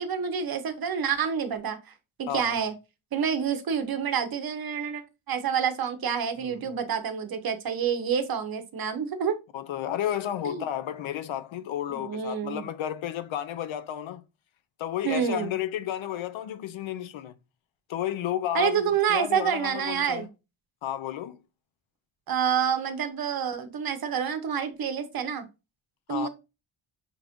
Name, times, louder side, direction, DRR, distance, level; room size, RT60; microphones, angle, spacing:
voice 1, 0.0-1.8 2.2-2.7 3.1-9.4 10.4-10.6 11.9-12.6 15.0-15.5 18.5-20.3 22.3-25.5 26.1-26.3, right 7 dB, 45° right, 0.8 m, -28 dB
voice 2, 9.5-14.2 14.8-17.3 17.9-20.3 20.8-21.4 26.1-26.3, left 11 dB, 70° left, 0.6 m, -32 dB
6.0 x 2.5 x 3.5 m
wide cardioid pair, 165°, 49 cm